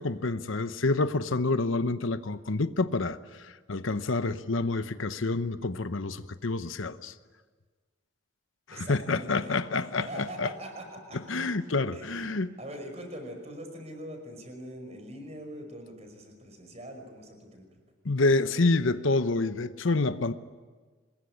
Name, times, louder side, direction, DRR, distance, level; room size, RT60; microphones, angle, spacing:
voice 1, 0.0-7.1 8.7-10.5 11.3-12.6 18.0-20.3, left 3 dB, 75° left, 0.9 m, -28 dB
voice 2, 8.7-11.5 11.9-17.7, right 1 dB, 30° right, 5.4 m, -43 dB
25.5 x 21.0 x 9.8 m
head